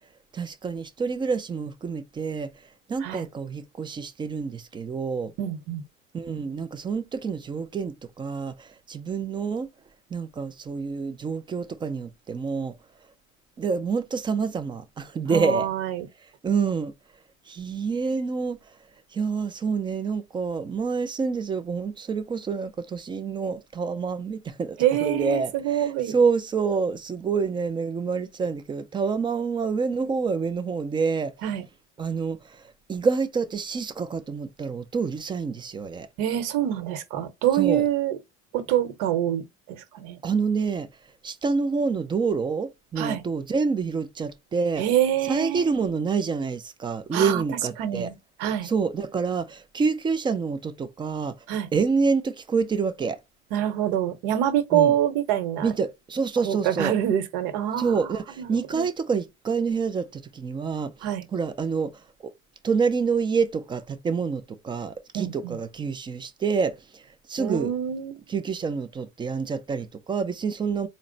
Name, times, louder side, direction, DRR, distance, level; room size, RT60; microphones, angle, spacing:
voice 1, 0.3-5.3 6.1-9.7 10.1-12.8 13.6-15.7 16.2-16.9 17.5-18.8 19.1-31.3 32.0-36.1 37.5-37.8 40.2-44.8 45.2-48.1 48.6-51.4 51.7-53.2 54.7-54.9 55.6-57.0 57.8-61.0 61.3-62.3 62.6-67.7 68.3-70.9, right 5 dB, 15° right, 0.3 m, -27 dB
voice 2, 5.4-5.8 15.3-16.1 24.8-26.1 31.4-31.6 36.2-38.2 38.5-40.2 43.0-43.2 44.8-45.6 47.1-47.4 47.8-48.1 48.4-48.7 51.5-51.7 53.5-55.7 56.4-58.1 58.4-58.9 61.0-61.3 65.1-65.5 67.4-68.2, right 11 dB, 70° right, 1.0 m, -25 dB
4.2 x 2.1 x 3.8 m
cardioid pair, 150°, 31 cm